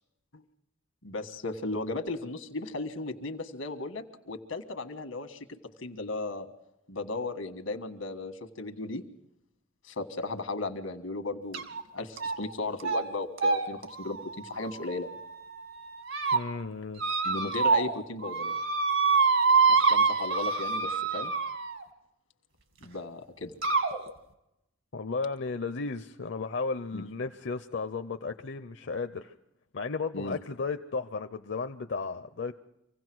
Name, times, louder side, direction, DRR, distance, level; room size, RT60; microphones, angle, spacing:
voice 1, 1.0-5.5 5.8-6.5 6.9-9.0 9.9-11.6 11.9-15.1 17.2-18.5 19.7-21.3 22.8-23.5 26.9-27.0 30.1-30.4, left 2 dB, 85° left, 8 dB, 1.6 m, -36 dB
sound 1, 11.5-11.8 12.2-12.5 12.8-13.0 13.4-15.3 15.8-16.4 17.0-18.0 18.2-21.8 22.8-22.9 23.6-24.0, right 4 dB, 75° right, 2.1 m, -26 dB
voice 2, 16.3-17.0 24.9-29.3 29.7-32.5, left 4 dB, 60° left, 7 dB, 0.6 m, -34 dB
25.5 x 16.5 x 6.2 m, 0.85 s
head